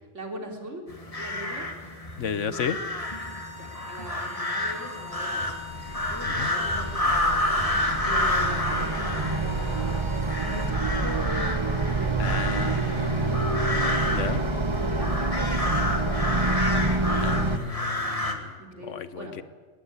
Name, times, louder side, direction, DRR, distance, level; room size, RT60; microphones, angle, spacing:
voice 1, 0.1-0.9 1.1-1.7 3.6-5.4 5.7-7.1 8.0-10.1 10.4-13.5 14.0-16.1 18.6-19.3, equal, 80° right, 2 dB, 4.1 m, -40 dB
sound 1, 0.9-18.3, left 1 dB, 30° left, 2.4 m, -30 dB
voice 2, 2.2-2.8 6.4-6.5 12.2-13.7 14.1-14.4 17.2-18.5 18.9-19.4, left 7 dB, 85° left, 13 dB, 1.4 m, -33 dB
sound 2, 3.0-10.8, left 4 dB, 55° left, 2.4 m, -43 dB
sound 3, 5.5-17.6, right 3 dB, 25° right, 1.0 m, -27 dB
20.5 x 18.5 x 9.7 m, 1.5 s
omnidirectional pair, 1.2 m